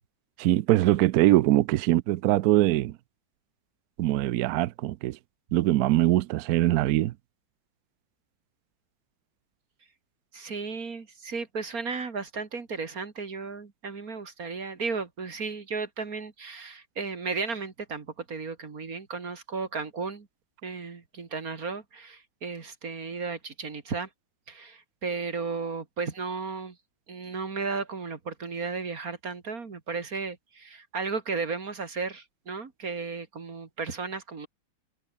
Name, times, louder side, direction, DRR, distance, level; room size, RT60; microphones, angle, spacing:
voice 1, 0.4-3.0 4.0-5.2 5.5-7.1, right 15 dB, 80° right, 0.8 m, -22 dB
voice 2, 10.3-20.3 20.6-24.1 24.5-26.8 27.1-34.5, right 4 dB, 45° right, 2.4 m, -34 dB
omnidirectional pair, 2.2 m